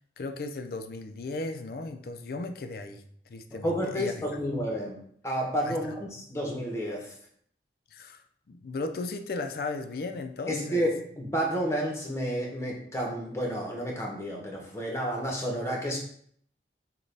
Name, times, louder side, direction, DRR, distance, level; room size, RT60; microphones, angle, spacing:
voice 1, 0.2-4.1 5.6-5.8 7.9-10.9, left 3 dB, 55° left, 7 dB, 0.4 m, -36 dB
voice 2, 3.6-5.0 5.2-7.1 10.5-16.0, equal, 15° left, 0 dB, 0.8 m, -30 dB
6.2 x 2.2 x 3.3 m, 0.64 s
head